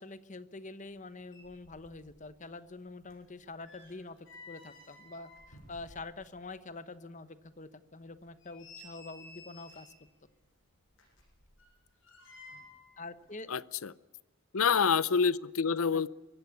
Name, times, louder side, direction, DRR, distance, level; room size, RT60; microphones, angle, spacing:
voice 1, 0.0-9.9 13.0-13.5 15.9-16.1, left 3 dB, 35° left, 13 dB, 1.1 m, -46 dB
sound 1, 1.2-2.2 2.5-6.4 6.8-6.9 7.4-7.5 8.1-10.1 10.9-12.9 13.2-13.3, left 2 dB, 60° left, 7.6 m, -54 dB
voice 2, 13.5-13.9 14.5-16.1, left 6 dB, 75° left, 19 dB, 0.7 m, -27 dB
23.5 x 15.0 x 9.5 m, 1.2 s
head